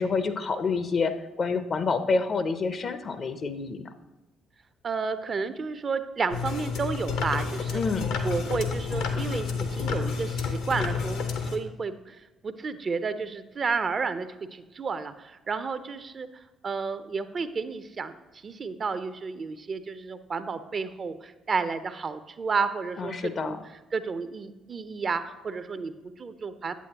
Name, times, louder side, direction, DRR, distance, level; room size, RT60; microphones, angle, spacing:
voice 1, 0.0-3.9 7.7-8.1 23.0-23.6, left 4 dB, 45° left, 11 dB, 0.6 m, -28 dB
voice 2, 4.8-7.8 8.2-11.2 11.5-23.5 23.9-26.7, right 5 dB, 40° right, 12 dB, 0.5 m, -31 dB
sound 1, 6.3-11.6, left 5 dB, 70° left, 0.8 m, -30 dB
8.4 x 8.3 x 2.9 m, 1.1 s
figure-of-eight pair, 45°, 0 cm